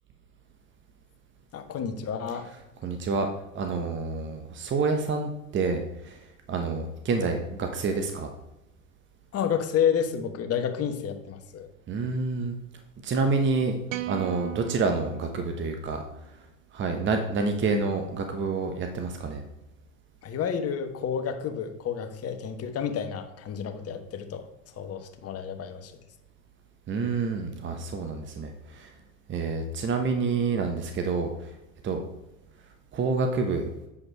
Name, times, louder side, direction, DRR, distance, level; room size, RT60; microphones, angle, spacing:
voice 1, 1.5-2.5 7.2-7.3 9.3-11.7 20.2-24.5 24.8-25.9, left 8 dB, 35° left, 7 dB, 1.3 m, -30 dB
voice 2, 2.8-3.3 3.5-6.2 6.5-8.3 11.9-12.5 13.0-13.7 14.1-16.0 16.7-19.4 26.9-28.9 29.3-31.3 31.8-32.0 32.9-33.7, right 4 dB, 30° right, 5 dB, 1.0 m, -28 dB
sound 1, 13.9-16.3, right 14 dB, 75° right, 0.6 m, -38 dB
8.4 x 5.2 x 4.6 m, 0.96 s
hypercardioid pair, 90°, 40 cm